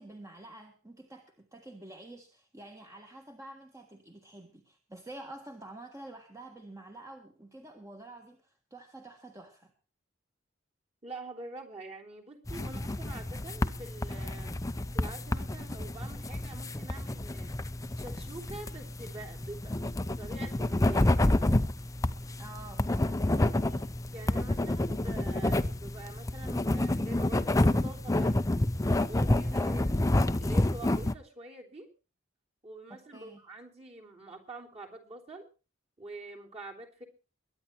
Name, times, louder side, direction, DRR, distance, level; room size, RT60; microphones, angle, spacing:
voice 1, 0.0-9.7 22.4-23.9 29.5-29.9 33.1-33.4, right 2 dB, 15° right, 3 dB, 1.5 m, -48 dB
voice 2, 11.0-17.5 18.0-21.4 24.1-28.4 29.1-29.9 30.4-31.9 32.6-35.5 36.0-37.0, right 2 dB, 35° right, 0 dB, 3.5 m, -46 dB
sound 1, 12.5-31.1, left 1 dB, 15° left, 0.7 m, -29 dB
22.5 x 9.7 x 4.5 m, 0.33 s
head